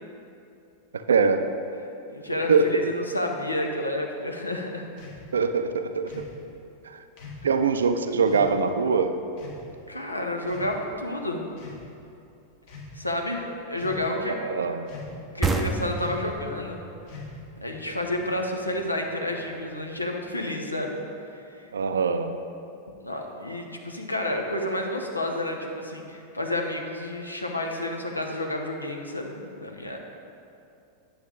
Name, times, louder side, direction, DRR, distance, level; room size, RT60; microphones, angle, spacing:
voice 1, 0.9-1.5 2.5-2.8 5.3-6.2 6.8-7.0 7.4-9.1 14.3-14.9 21.7-22.3, right 5 dB, 70° right, 8 dB, 0.5 m, -23 dB
voice 2, 2.1-4.9 9.9-11.5 13.0-14.4 15.1-16.8 17.6-21.0 21.5-21.7 23.0-30.0, left 1 dB, 85° left, 2 dB, 0.8 m, -30 dB
sound 1, 5.0-5.2 6.1-6.4 7.2-7.5 8.3-8.5 9.4-9.7 10.4-11.0 11.5-11.9 12.6-12.9 13.8-14.2 14.9-15.3 16.0-16.3 17.1-17.5, left 4 dB, 50° left, 1.5 m, -42 dB
sound 2, 15.4-18.8, right 3 dB, 15° right, 0.6 m, -30 dB
9.4 x 7.0 x 3.8 m, 2.7 s
figure-of-eight pair, 90°, 0 cm